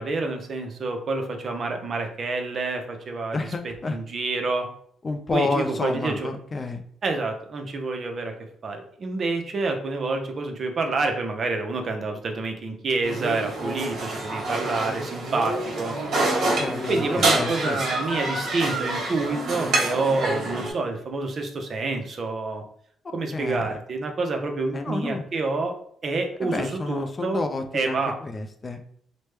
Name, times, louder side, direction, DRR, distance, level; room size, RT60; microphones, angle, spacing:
voice 1, 0.0-4.7 5.3-6.3 7.0-8.3 8.6-15.9 16.9-22.6 23.1-25.8 26.0-27.4 27.7-28.2, right 3 dB, 50° right, 4 dB, 0.6 m, -28 dB
voice 2, 3.3-4.0 5.0-6.8 16.6-17.8 23.0-23.8 24.7-25.2 26.4-28.8, left 3 dB, 30° left, 6 dB, 0.4 m, -30 dB
sound 1, 13.0-20.7, right 2 dB, 65° right, 1.2 m, -27 dB
3.0 x 2.1 x 3.2 m, 0.63 s
cardioid pair, 90°, 0 cm